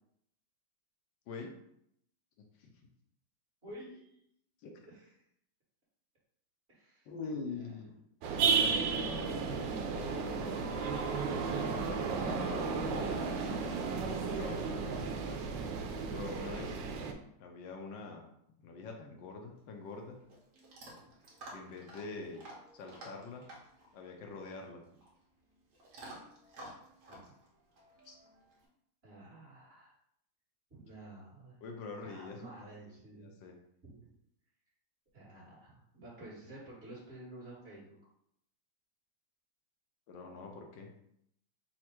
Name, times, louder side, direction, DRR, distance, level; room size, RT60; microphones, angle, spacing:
voice 1, 3.6-4.2 4.8-5.1 6.7-7.1 7.4-7.7 22.0-22.2 27.1-27.3 29.0-29.9 30.7-31.6 32.0-33.3 33.8-34.1 35.1-38.0, right 1 dB, 35° right, -7 dB, 1.9 m, -51 dB
voice 2, 7.1-7.9 8.3-9.6 9.9-10.8 11.8-13.2 14.3-14.6 16.1-16.8 17.4-18.3 18.6-20.2 21.5-22.4 22.7-23.4 23.9-24.8 28.0-28.2 31.6-32.7 33.1-33.5 40.1-40.9, left 3 dB, 75° left, 2 dB, 1.3 m, -44 dB
sound 1, 8.2-17.1, right 5 dB, 80° right, 1.3 m, -33 dB
Chewing mastication / Dog, 19.5-28.7, right 1 dB, 60° right, 1.5 m, -53 dB
4.3 x 2.4 x 4.3 m, 0.72 s
omnidirectional pair, 2.0 m